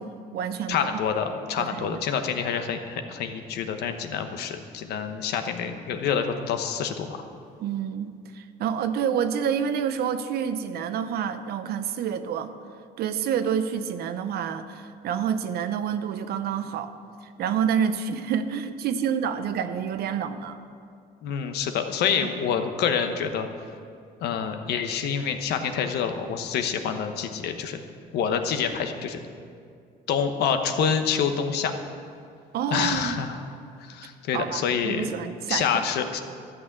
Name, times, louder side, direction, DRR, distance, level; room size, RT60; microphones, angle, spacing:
voice 1, 0.0-0.8 1.6-2.0 7.6-12.5 13.0-16.9 17.2-20.6 32.5-33.2 34.3-35.7, right 8 dB, 70° right, 10 dB, 0.8 m, -28 dB
voice 2, 0.7-7.2 21.2-23.5 24.2-27.8 28.1-29.2 30.1-31.7 32.7-33.4 33.8-35.1 35.5-36.2, left 7 dB, 75° left, 7 dB, 1.1 m, -27 dB
13.0 x 6.2 x 8.0 m, 2.3 s
cardioid pair, 110°, 17 cm